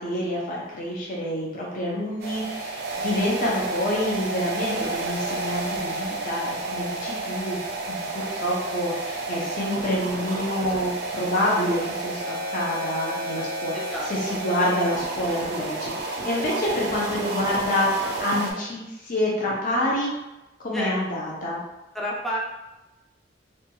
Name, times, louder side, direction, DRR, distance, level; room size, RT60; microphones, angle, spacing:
voice 1, 0.0-7.6 7.9-13.7 14.1-20.1 20.6-21.6, left 1 dB, 45° left, -4 dB, 0.6 m, -27 dB
sound 1, 2.2-18.5, right 2 dB, 60° right, 0.5 m, -31 dB
voice 2, 13.7-14.4 20.7-20.9 21.9-22.4, equal, ahead, -5 dB, 0.4 m, -30 dB
2.7 x 2.2 x 2.8 m, 1.0 s
head